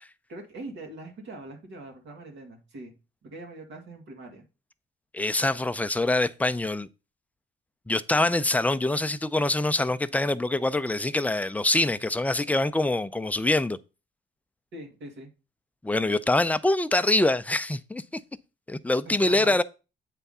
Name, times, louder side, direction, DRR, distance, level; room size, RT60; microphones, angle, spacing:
voice 1, 0.3-2.9 3.2-4.4 14.7-15.3 19.1-19.5, right 2 dB, 70° right, 2.1 m, -42 dB
voice 2, 5.1-6.9 7.9-13.8 15.8-18.0 18.7-19.6, left 2 dB, 5° left, 0.4 m, -24 dB
8.3 x 3.4 x 5.4 m
cardioid pair, 90°, 20 cm